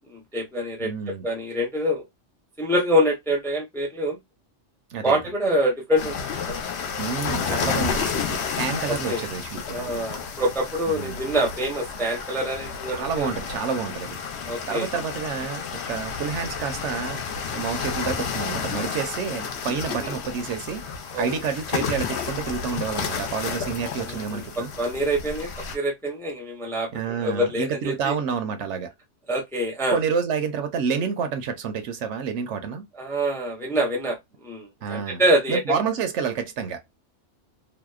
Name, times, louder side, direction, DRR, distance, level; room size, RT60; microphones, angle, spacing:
voice 1, 0.1-0.9 1.2-2.0 2.6-4.2 5.0-6.5 7.4-7.6 8.9-9.2 9.7-13.3 14.5-14.9 20.0-20.1 21.1-21.2 24.1-28.1 29.3-30.0 33.0-34.2 34.4-35.6, equal, 5° left, 0.5 m, -25 dB
voice 2, 0.8-1.3 4.9-5.2 7.0-9.9 10.9-11.2 12.9-17.2 17.5-20.9 21.2-24.7 26.9-28.9 29.9-32.9 34.8-35.2 35.5-36.8, right 6 dB, 75° right, 0.9 m, -29 dB
sound 1, 6.0-25.8, left 6 dB, 65° left, 0.8 m, -31 dB
2.7 x 2.0 x 2.3 m
omnidirectional pair, 1.2 m